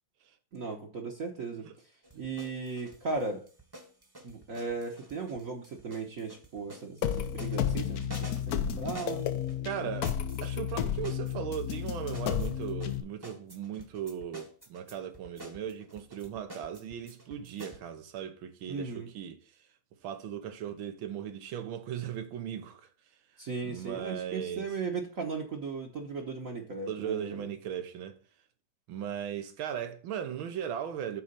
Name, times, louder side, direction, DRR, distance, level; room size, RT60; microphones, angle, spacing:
voice 1, 0.5-1.7 2.1-3.4 4.2-9.3 18.7-19.1 23.4-27.5, right 4 dB, 45° right, 1.3 m, -37 dB
sound 1, 2.0-9.6 10.0-17.8, equal, 15° right, 1.0 m, -49 dB
sound 2, 7.0-13.0, left 9 dB, 70° left, 0.9 m, -32 dB
voice 2, 9.6-10.2 10.4-19.4 20.0-22.9 23.6-24.7 26.9-28.2 28.9-31.2, right 9 dB, 75° right, 1.8 m, -37 dB
6.8 x 4.3 x 6.7 m
omnidirectional pair, 2.2 m